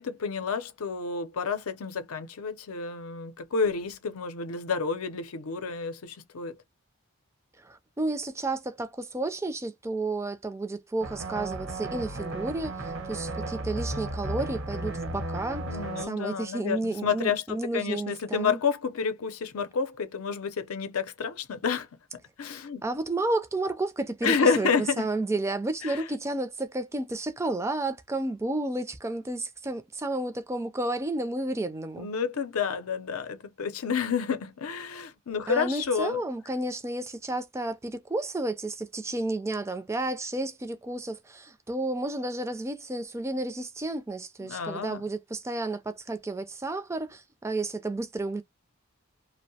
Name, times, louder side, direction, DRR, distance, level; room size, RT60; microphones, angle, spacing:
voice 1, 0.0-6.6 15.7-21.9 22.1-22.8 24.2-25.1 25.8-26.0 32.0-36.2 44.4-45.1, left 5 dB, 90° left, 0.6 m, -30 dB
voice 2, 7.6-15.7 16.0-18.6 22.8-32.1 35.5-48.4, right 2 dB, 15° right, 0.3 m, -31 dB
sound 1, 11.0-16.1, right 2 dB, 70° right, 0.9 m, -34 dB
2.6 x 2.0 x 2.7 m
head